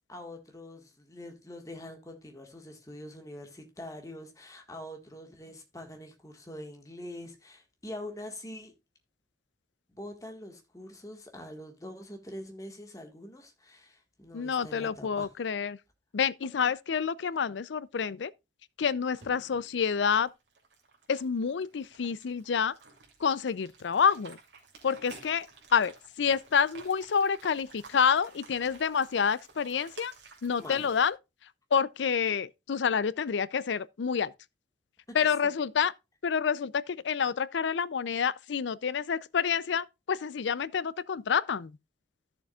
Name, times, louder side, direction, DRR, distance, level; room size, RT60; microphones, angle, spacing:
voice 1, 0.1-8.7 9.9-15.3 16.6-16.7 19.3-19.6 30.6-30.9 35.1-35.2 35.4-35.5, left 1 dB, 20° left, 1.6 m, -44 dB
voice 2, 14.3-15.8 16.1-18.3 18.8-20.3 21.1-22.8 23.2-24.4 24.8-25.5 25.7-30.1 30.4-31.2 31.7-34.3 35.1-35.9 36.2-41.8, left 6 dB, 90° left, 0.5 m, -28 dB
sound 1, 19.1-31.1, right 4 dB, 85° right, 2.7 m, -53 dB
13.5 x 6.9 x 2.3 m
head